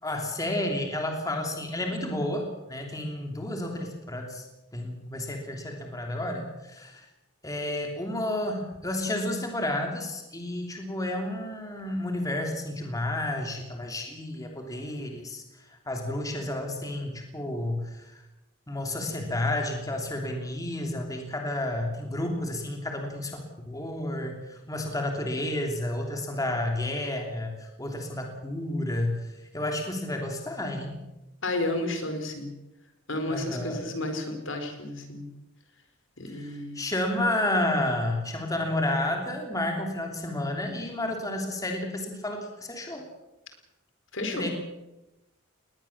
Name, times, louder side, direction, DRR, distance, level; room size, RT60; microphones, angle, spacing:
voice 1, 0.0-4.5 4.7-7.1 7.4-15.4 15.9-18.2 18.7-31.0 33.3-33.8 36.3-43.0 44.3-44.5, left 1 dB, 15° left, 2 dB, 3.1 m, -31 dB
voice 2, 31.4-32.5 33.1-35.3 36.2-36.8 44.1-44.5, left 2 dB, 65° left, 6 dB, 4.4 m, -32 dB
20.5 x 20.0 x 7.3 m, 0.98 s
head